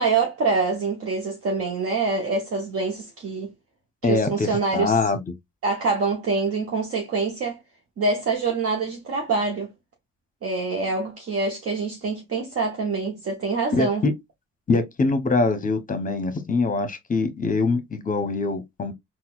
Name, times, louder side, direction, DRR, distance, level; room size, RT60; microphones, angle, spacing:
voice 1, 0.0-3.5 4.0-5.0 5.6-7.6 8.0-9.7 10.4-14.1, right 4 dB, 50° right, 0.9 m, -25 dB
voice 2, 4.0-5.2 13.7-14.1 14.7-18.9, left 3 dB, 25° left, 0.8 m, -23 dB
4.1 x 2.2 x 2.3 m
cardioid pair, 90°, 30 cm